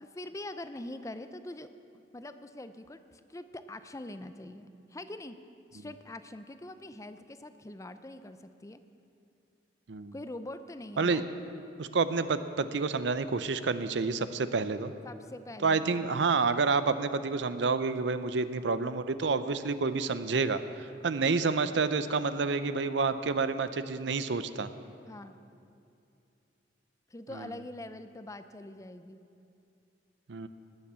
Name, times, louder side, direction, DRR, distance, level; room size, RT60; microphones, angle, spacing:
voice 1, 0.0-1.7 2.1-5.4 5.7-8.8 10.1-11.2 15.0-16.1 25.1-25.4 27.1-29.2, left 1 dB, 20° left, 10 dB, 0.5 m, -43 dB
voice 2, 11.8-14.9 15.6-24.7 27.3-27.5 30.3-30.5, right 4 dB, 75° right, 12 dB, 0.6 m, -29 dB
18.5 x 7.2 x 7.5 m, 2.6 s
head